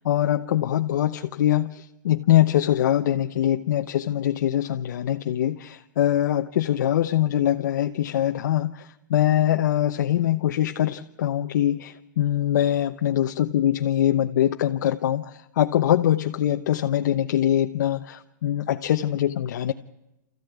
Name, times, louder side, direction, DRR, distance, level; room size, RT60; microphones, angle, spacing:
voice 1, 0.0-1.7 2.0-8.8 9.1-15.2 15.6-19.7, left 11 dB, 75° left, 5 dB, 1.0 m, -23 dB
28.0 x 15.0 x 9.5 m, 0.93 s
supercardioid pair, 165°, 10 cm